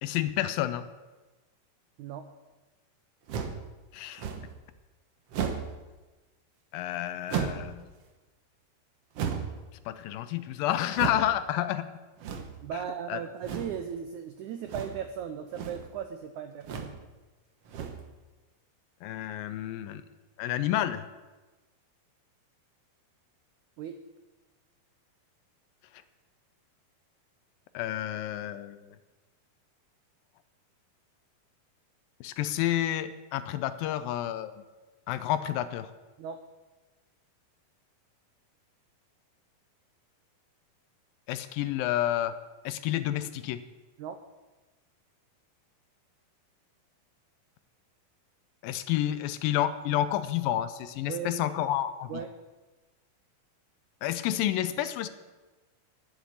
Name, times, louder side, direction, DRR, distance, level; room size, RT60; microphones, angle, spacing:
voice 1, 0.0-0.8 3.9-4.2 6.7-7.8 9.9-11.9 13.1-13.2 19.0-20.0 20.4-21.0 27.7-29.0 32.2-34.5 35.1-35.9 41.3-42.3 42.6-43.6 48.6-52.2 54.0-55.1, left 12 dB, 80° left, 12 dB, 2.2 m, -30 dB
sound 1, 3.3-3.6 4.2-4.6 5.3-5.8 7.3-7.7 9.1-9.6 10.9-11.3 12.2-12.6 13.4-13.8 14.6-15.1 15.4-15.9 16.6-17.0 17.6-18.1, right 7 dB, 75° right, 1.4 m, -34 dB
voice 2, 12.6-16.9 23.8-24.0 36.2-36.4 44.0-44.2 51.1-51.5 52.1-52.3, right 8 dB, 90° right, 7 dB, 1.7 m, -37 dB
11.5 x 8.0 x 8.4 m, 1.2 s
omnidirectional pair, 4.3 m